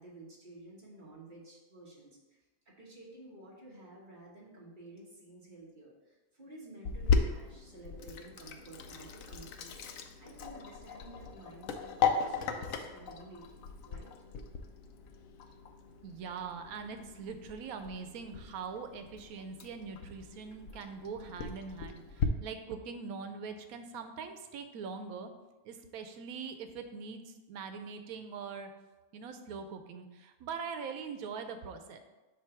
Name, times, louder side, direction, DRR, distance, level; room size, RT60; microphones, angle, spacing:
voice 1, 0.0-2.4 2.6-14.2, right 2 dB, 35° right, -4 dB, 1.5 m, -52 dB
Sink (filling or washing), 6.8-22.3, left 6 dB, 70° left, 1.0 m, -37 dB
voice 2, 16.0-25.3 25.6-28.7 29.1-32.0, right 5 dB, 90° right, 7 dB, 1.1 m, -42 dB
7.5 x 2.6 x 5.8 m, 1.1 s
omnidirectional pair, 1.5 m